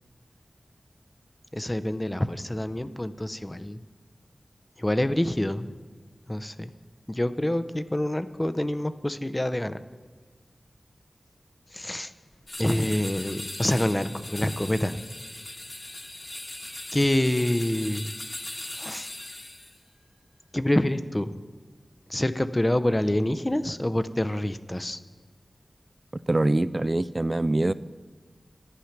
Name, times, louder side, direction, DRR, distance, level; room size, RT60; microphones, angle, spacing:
voice 1, 1.5-3.8 4.8-5.7 6.3-6.7 7.1-9.8 11.7-12.1 12.6-15.0 16.9-18.1 18.8-19.1 20.5-21.4 22.1-25.0, left 1 dB, 20° left, 11 dB, 0.5 m, -26 dB
sound 1, 12.5-19.8, left 1 dB, 45° left, 1.5 m, -39 dB
voice 2, 26.3-27.7, right 2 dB, 35° right, 16 dB, 0.3 m, -24 dB
11.5 x 9.1 x 5.9 m, 1.4 s
wide cardioid pair, 60°, 0 cm